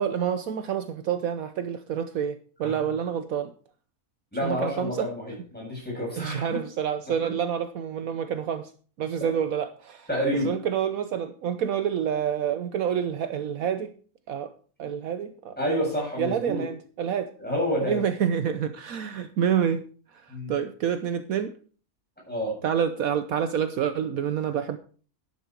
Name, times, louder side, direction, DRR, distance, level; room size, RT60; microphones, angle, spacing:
voice 1, 0.0-3.5 4.4-5.1 6.2-8.7 9.0-10.1 10.3-13.9 14.3-14.5 14.8-15.6 16.2-17.3 17.8-19.8 20.2-21.5 22.6-24.8, right 8 dB, 70° right, 10 dB, 1.2 m, -28 dB
voice 2, 4.3-6.6 7.1-7.3 9.2-9.3 10.1-10.5 15.6-16.6 17.4-18.0 20.3-20.5 22.3-22.6, equal, 5° left, -3 dB, 7.8 m, -29 dB
11.5 x 10.0 x 4.6 m, 0.42 s
omnidirectional pair, 1.6 m